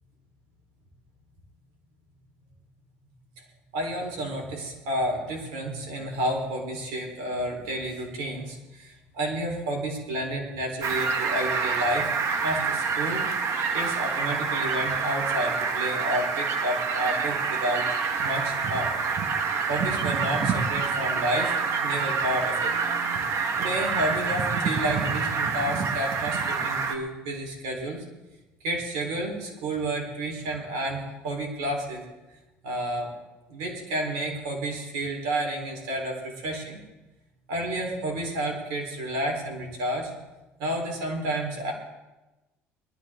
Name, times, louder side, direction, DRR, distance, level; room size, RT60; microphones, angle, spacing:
voice 1, 3.7-12.1 12.4-18.9 19.7-22.7 23.6-28.0 28.6-32.0 32.6-33.1 33.5-36.8 37.5-40.1 40.6-41.7, right 1 dB, 85° right, 1 dB, 4.0 m, -30 dB
Fowl, 10.8-26.9, right 5 dB, 60° right, 1.6 m, -27 dB
20.5 x 13.0 x 3.8 m, 1.1 s
supercardioid pair, 80°, 6 cm